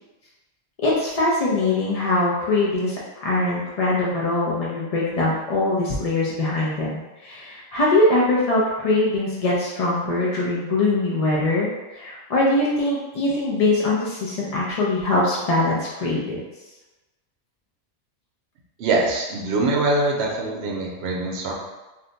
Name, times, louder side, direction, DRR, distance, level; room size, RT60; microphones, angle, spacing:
voice 1, 0.8-16.4, left 2 dB, 65° left, -5 dB, 0.3 m, -22 dB
voice 2, 18.8-21.5, right 2 dB, 65° right, -1 dB, 0.8 m, -23 dB
2.6 x 2.2 x 3.8 m, 1.1 s
omnidirectional pair, 1.3 m